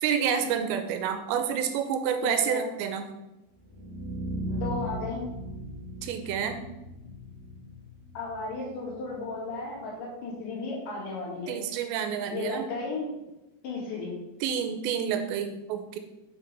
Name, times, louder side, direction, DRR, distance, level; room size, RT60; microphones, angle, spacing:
voice 1, 0.0-3.1 6.0-6.6 11.5-12.6 14.4-16.0, right 8 dB, 85° right, 7 dB, 2.8 m, -29 dB
voice 2, 2.2-2.7 4.5-5.3 8.1-11.6 12.3-13.1 13.6-14.2, left 3 dB, 65° left, -5 dB, 4.2 m, -34 dB
sound 1, 3.6-9.6, right 1 dB, 15° right, 2.5 m, -38 dB
7.7 x 6.6 x 4.0 m, 0.95 s
omnidirectional pair, 5.1 m